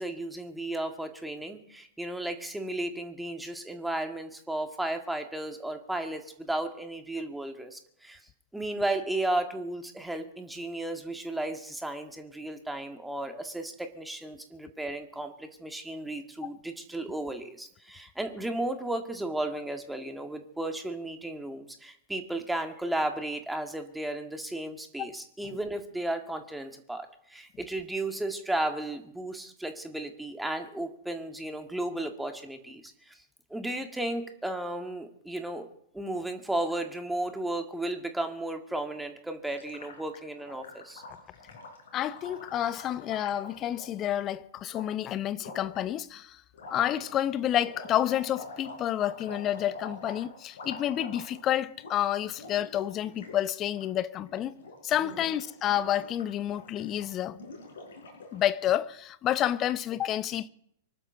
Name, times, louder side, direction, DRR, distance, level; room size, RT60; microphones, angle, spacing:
voice 1, 0.0-8.2 8.5-33.2 33.5-35.7 35.9-41.0 55.0-55.3, right 1 dB, 5° right, 2.0 m, -34 dB
Gurgling, 39.4-44.1 44.7-44.8 45.4-45.8 46.5-51.5 51.7-51.9 52.2-53.4 53.6-53.9 54.2-54.7 55.0-58.4, left 2 dB, 65° left, 6.1 m, -46 dB
voice 2, 41.9-46.4 46.7-54.6 54.8-57.4 58.3-60.5, left 11 dB, 30° left, 0.8 m, -29 dB
24.5 x 12.5 x 4.0 m
figure-of-eight pair, 100°, 0 cm